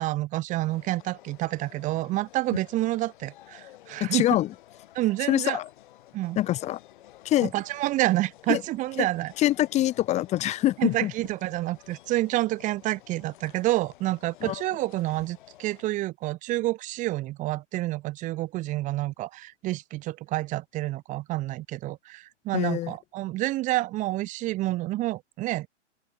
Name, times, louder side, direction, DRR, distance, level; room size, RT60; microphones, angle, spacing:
voice 1, 0.0-4.2 4.9-5.6 6.1-6.4 7.5-9.3 10.8-25.7, right 17 dB, 20° right, 2.2 m, -28 dB
sound 1, 0.6-15.8, left 14 dB, 45° left, 7.9 m, -53 dB
voice 2, 4.0-4.5 5.3-5.7 6.4-6.8 7.2-7.5 8.5-8.6 9.0-9.1 9.4-11.1 14.4-14.6 22.5-22.9, left 14 dB, 20° left, 2.1 m, -24 dB
open air
figure-of-eight pair, 125°, 36 cm